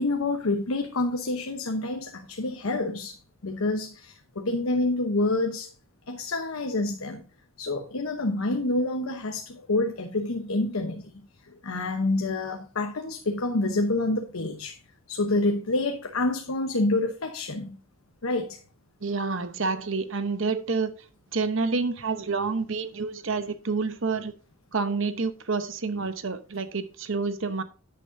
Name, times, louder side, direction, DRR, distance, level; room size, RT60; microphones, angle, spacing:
voice 1, 0.0-5.7 6.1-7.2 7.6-11.1 11.6-14.8 15.1-17.8 18.2-18.6, left 2 dB, 80° left, 1.0 m, -27 dB
voice 2, 19.0-20.9 21.3-24.3 24.7-27.6, right 4 dB, 60° right, 0.9 m, -28 dB
10.0 x 9.0 x 2.7 m
head